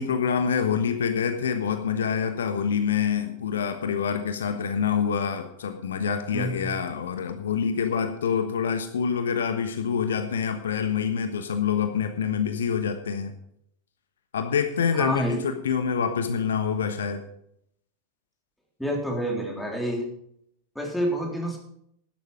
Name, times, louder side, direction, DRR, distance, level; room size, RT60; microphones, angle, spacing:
voice 1, 0.0-13.3 14.3-17.2, left 7 dB, 65° left, 8 dB, 1.2 m, -26 dB
voice 2, 6.3-6.7 14.9-15.4 18.8-20.0 20.8-21.6, equal, ahead, 0 dB, 3.5 m, -28 dB
12.0 x 11.0 x 5.0 m, 0.71 s
figure-of-eight pair, 90°, 0 cm